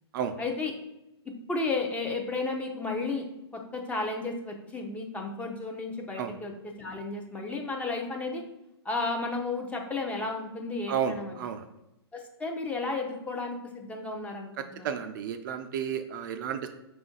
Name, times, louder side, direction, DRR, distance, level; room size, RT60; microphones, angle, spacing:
voice 1, 0.4-0.7 1.2-3.3 3.5-6.5 6.8-8.4 8.8-11.5 12.1-14.9, left 3 dB, 10° left, 2 dB, 0.5 m, -33 dB
voice 2, 10.9-11.7 14.6-16.7, right 8 dB, 50° right, 7 dB, 0.4 m, -32 dB
5.1 x 2.5 x 3.7 m, 0.89 s
hypercardioid pair, 120°, 14 cm